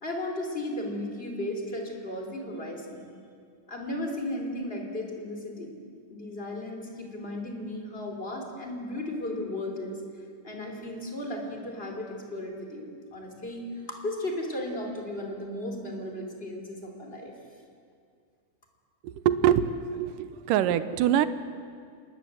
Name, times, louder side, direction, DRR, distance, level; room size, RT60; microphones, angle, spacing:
voice 1, 0.0-3.0 3.7-5.7 6.1-10.0 10.4-17.3, left 1 dB, 15° left, 1 dB, 3.4 m, -35 dB
voice 2, 19.0-19.7 20.0-21.3, right 10 dB, 85° right, 13 dB, 2.4 m, -24 dB
27.5 x 20.5 x 7.8 m, 2.2 s
omnidirectional pair, 3.7 m